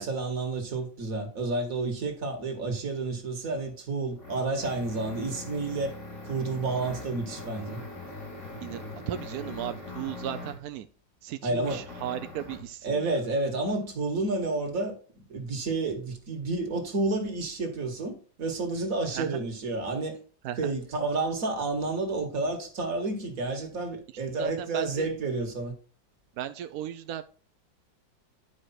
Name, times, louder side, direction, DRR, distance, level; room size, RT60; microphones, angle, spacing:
voice 1, 0.0-5.9 6.2-7.8 11.4-11.8 12.8-15.0 15.3-20.2 20.6-25.7, right 3 dB, 50° right, 1.9 m, -30 dB
sound 1, 3.5-10.7 11.6-12.7, left 2 dB, 50° left, 2.5 m, -41 dB
voice 2, 8.6-10.9 11.2-13.2 19.1-19.4 20.4-20.7 24.4-25.1 26.4-27.2, right 11 dB, 75° right, 0.8 m, -36 dB
10.5 x 4.8 x 4.3 m
omnidirectional pair, 2.0 m